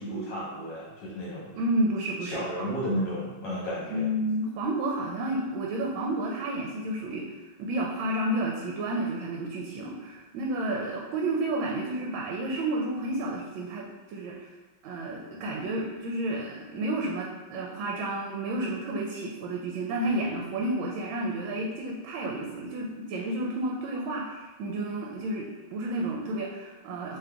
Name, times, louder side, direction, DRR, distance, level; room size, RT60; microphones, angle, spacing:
voice 1, 0.0-1.6 2.2-4.1, equal, 65° left, -6 dB, 1.5 m, -33 dB
voice 2, 1.5-2.6 3.9-14.5 14.8-27.2, right 1 dB, 80° right, -1 dB, 1.3 m, -31 dB
3.7 x 3.2 x 3.4 m, 1.2 s
omnidirectional pair, 2.2 m